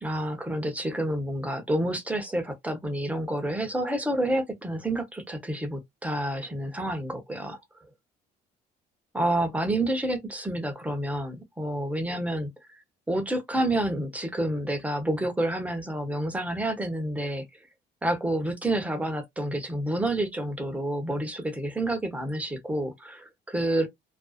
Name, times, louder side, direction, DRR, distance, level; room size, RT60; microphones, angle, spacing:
voice 1, 0.0-7.6 9.1-12.5 13.1-17.4 18.0-23.9, right 1 dB, 10° right, 0.8 m, -29 dB
2.5 x 2.2 x 2.3 m
cardioid pair, 110°, 17 cm